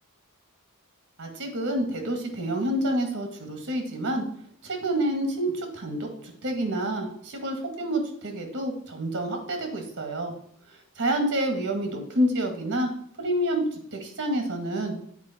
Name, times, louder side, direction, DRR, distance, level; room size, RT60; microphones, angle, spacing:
voice 1, 1.2-4.2 4.6-10.3 11.0-12.9 13.2-13.7 13.9-14.9, right 1 dB, 55° right, 4 dB, 2.0 m, -28 dB
9.6 x 4.5 x 4.4 m, 0.64 s
head